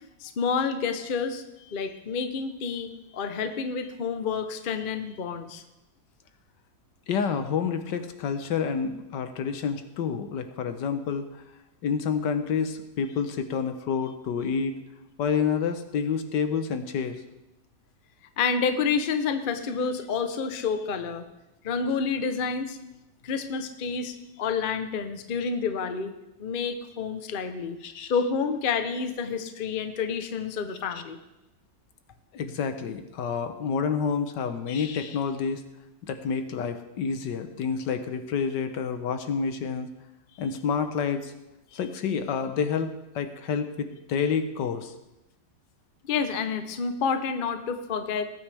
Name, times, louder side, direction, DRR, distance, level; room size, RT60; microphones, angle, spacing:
voice 1, 0.2-1.4 1.7-5.6 18.4-21.2 21.6-22.8 23.2-26.1 26.4-27.8 28.1-31.2 41.7-41.8 46.1-48.2, left 5 dB, 45° left, 8 dB, 0.7 m, -29 dB
voice 2, 7.1-11.3 11.8-14.7 15.2-17.2 25.4-25.5 27.8-28.1 32.3-35.6 36.0-39.9 40.4-41.3 41.7-44.9, left 6 dB, 75° left, 9 dB, 1.5 m, -28 dB
19.5 x 9.1 x 3.4 m, 0.93 s
omnidirectional pair, 1.9 m